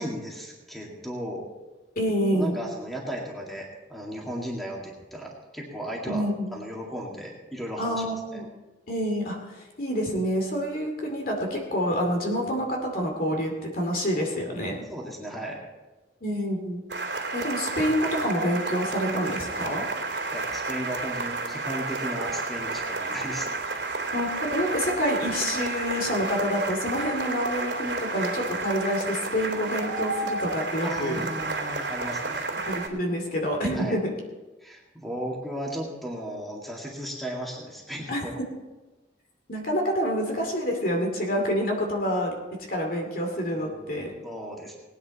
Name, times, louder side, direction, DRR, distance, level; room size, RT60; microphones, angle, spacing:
voice 1, 0.0-1.4 2.2-6.3 6.5-8.4 14.9-15.6 20.3-23.5 30.8-32.6 33.7-34.0 34.6-38.4 43.5-43.8 44.2-44.8, equal, ahead, -2 dB, 2.0 m, -35 dB
voice 2, 2.0-2.6 6.1-6.5 7.8-8.4 8.9-14.8 16.2-16.8 17.3-19.9 24.1-31.3 32.7-34.1 38.1-38.2 39.5-42.4 42.7-44.1, equal, 55° left, 1 dB, 2.4 m, -27 dB
sound 1, 16.9-32.9, right 3 dB, 75° right, 2.8 m, -31 dB
18.5 x 10.0 x 4.2 m, 1.1 s
head